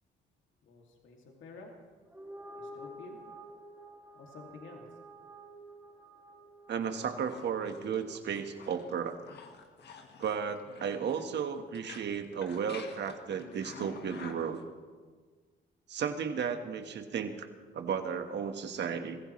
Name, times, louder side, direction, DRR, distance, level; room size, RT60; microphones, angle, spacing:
voice 1, 0.6-1.7 2.5-3.2 4.1-4.8, left 4 dB, 75° left, 0 dB, 2.5 m, -50 dB
sound 1, 2.0-8.6, right 1 dB, 10° right, 2.3 m, -50 dB
voice 2, 6.7-9.2 10.2-14.6 15.9-17.5 17.7-19.2, right 7 dB, 60° right, 7 dB, 1.4 m, -34 dB
sound 2, 6.8-14.6, left 5 dB, 60° left, 1.6 m, -50 dB
24.0 x 15.0 x 3.2 m, 1.5 s
cardioid pair, 90°, 20 cm